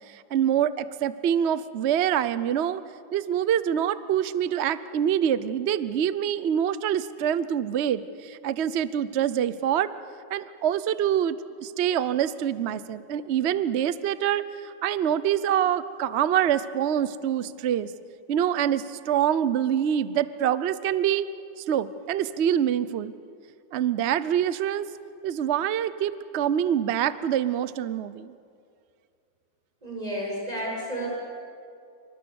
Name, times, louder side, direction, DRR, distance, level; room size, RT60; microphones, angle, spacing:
voice 1, 0.1-2.8 3.1-9.9 10.3-17.9 18.3-21.3 21.6-23.1 23.7-24.9 25.2-28.3, right 9 dB, 60° right, 15 dB, 0.6 m, -25 dB
voice 2, 29.8-31.1, right 1 dB, 20° right, -3 dB, 7.6 m, -31 dB
27.5 x 25.0 x 7.0 m, 2.4 s
omnidirectional pair, 2.1 m